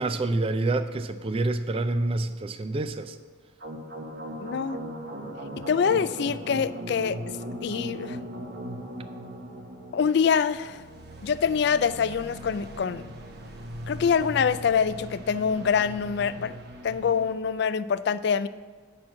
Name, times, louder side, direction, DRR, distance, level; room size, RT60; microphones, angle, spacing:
voice 1, 0.0-3.2, right 2 dB, 30° right, 10 dB, 0.4 m, -27 dB
sound 1, 3.6-17.3, equal, 50° right, 1.1 m, -39 dB
voice 2, 4.4-4.8 5.7-7.2 7.6-8.2 9.9-10.8 11.2-13.1 13.9-16.5 16.8-18.5, left 6 dB, 55° left, 15 dB, 0.3 m, -25 dB
8.7 x 6.1 x 7.2 m, 1.5 s
head